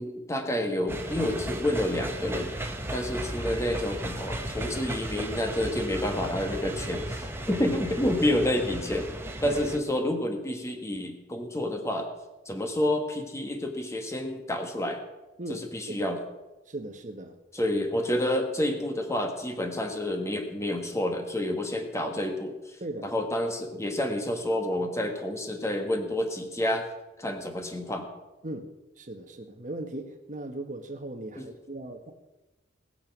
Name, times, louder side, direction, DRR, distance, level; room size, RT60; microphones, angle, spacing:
voice 1, 0.0-9.1 9.4-12.1 12.5-15.0 15.5-16.2 17.5-22.5 23.0-26.9 27.2-28.1 31.3-31.4, left 1 dB, 15° left, 4 dB, 1.5 m, -29 dB
sound 1, 0.9-9.8, right 1 dB, 15° right, 1.2 m, -35 dB
voice 2, 9.4-9.9 15.4-16.1 16.7-17.4 22.8-23.1 28.4-28.7 29.0-32.1, right 1 dB, 40° right, 6 dB, 1.3 m, -38 dB
20.0 x 7.1 x 6.1 m, 1.1 s
head